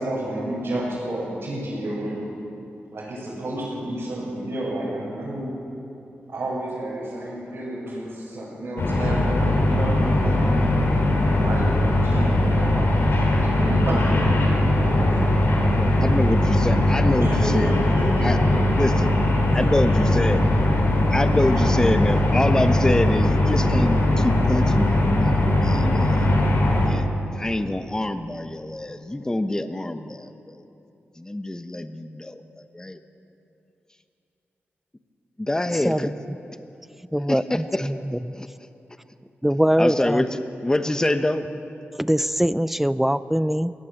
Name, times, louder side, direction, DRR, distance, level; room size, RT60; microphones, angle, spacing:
voice 1, 0.0-2.3 2.9-5.5 6.3-11.0 11.3-13.1 13.4-15.7 17.2-18.3 19.4-20.4 21.5-21.7, right 1 dB, 60° right, -9 dB, 7.2 m, -31 dB
sound 1, 8.8-26.9, left 1 dB, 65° left, 4.3 m, -20 dB
voice 2, 15.5-17.8 18.2-18.4 18.8-19.1 19.5-20.4 21.1-26.3 26.8-30.6 31.2-33.0 35.4-36.1 37.3-37.9 38.3-38.5 39.8-41.4, left 1 dB, 15° left, 8 dB, 1.1 m, -26 dB
voice 3, 37.1-38.4 39.4-40.2 42.0-43.7, equal, 5° right, 16 dB, 0.6 m, -22 dB
22.0 x 18.0 x 7.7 m, 2.9 s
cardioid pair, 80°, 4 cm